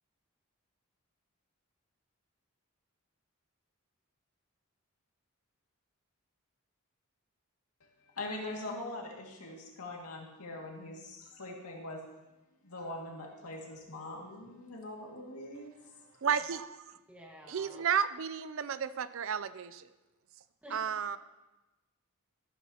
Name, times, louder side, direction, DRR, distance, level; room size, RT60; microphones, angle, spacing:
voice 1, 8.0-12.0 12.6-15.7, left 2 dB, 90° left, -1 dB, 2.2 m, -42 dB
voice 2, 16.2-16.8 17.5-19.8 20.7-21.2, right 7 dB, 60° right, 14 dB, 0.4 m, -32 dB
voice 3, 17.1-17.8 20.6-20.8, equal, 5° right, -1 dB, 1.6 m, -50 dB
13.5 x 12.0 x 2.9 m, 1.1 s
head